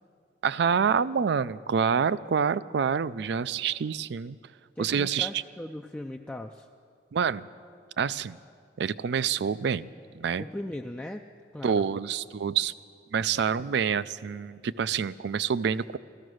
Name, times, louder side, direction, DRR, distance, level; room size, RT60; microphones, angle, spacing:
voice 1, 0.4-4.4 4.8-5.4 7.1-7.5 8.0-8.4 8.8-10.4 11.6-12.7 13.1-16.0, right 6 dB, 65° right, 17 dB, 0.4 m, -27 dB
voice 2, 4.8-6.7 10.4-11.2 11.5-11.9, left 1 dB, 5° left, 3 dB, 0.3 m, -38 dB
14.5 x 14.0 x 6.3 m, 2.2 s
head